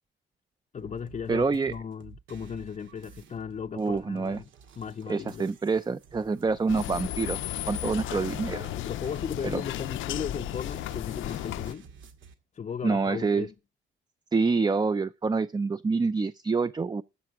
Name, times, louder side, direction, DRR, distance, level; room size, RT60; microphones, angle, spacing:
voice 1, 0.7-4.5 4.8-5.5 8.8-11.9 12.5-13.5, left 7 dB, 35° left, 0.6 m, -36 dB
sound 1, 0.8-12.3, right 5 dB, 75° right, 2.1 m, -51 dB
voice 2, 1.3-1.7 3.8-4.4 5.1-7.4 7.7-8.7 9.4-9.6 12.8-13.5 14.3-17.0, right 4 dB, 20° right, 0.6 m, -27 dB
sound 2, 6.7-11.7, left 14 dB, 85° left, 0.7 m, -34 dB
13.5 x 8.1 x 4.7 m
cardioid pair, 90°, 20 cm